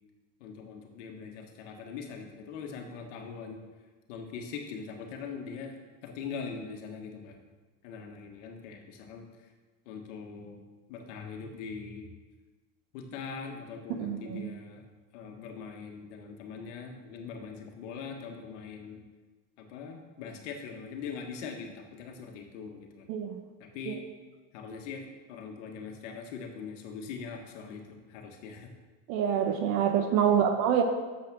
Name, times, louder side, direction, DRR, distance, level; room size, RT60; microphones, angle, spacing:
voice 1, 0.4-3.6 4.1-5.7 6.0-7.4 7.8-9.3 9.8-10.6 10.9-12.1 12.9-14.8 15.1-19.0 19.6-23.1 23.6-24.0 24.5-27.8 28.1-28.7 30.2-30.5, left 5 dB, 90° left, 3 dB, 1.5 m, -42 dB
voice 2, 13.9-14.5 23.1-23.3 23.9-24.0 29.1-30.8, right 8 dB, 65° right, 6 dB, 1.0 m, -26 dB
7.5 x 5.8 x 6.1 m, 1.3 s
supercardioid pair, 130°, 35 cm